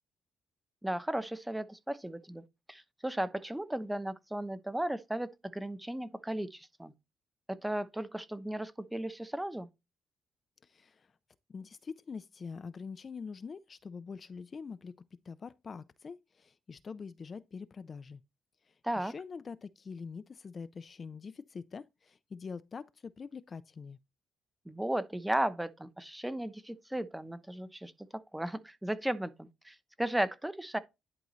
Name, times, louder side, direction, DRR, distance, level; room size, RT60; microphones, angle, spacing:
voice 1, 0.8-2.4 2.7-6.9 7.5-9.7 18.8-19.1 24.7-30.8, right 1 dB, 5° right, 0.8 m, -35 dB
voice 2, 10.6-11.1 11.5-18.2 18.7-24.0, left 5 dB, 40° left, 0.4 m, -45 dB
10.5 x 3.8 x 3.1 m
cardioid pair, 90°, 0 cm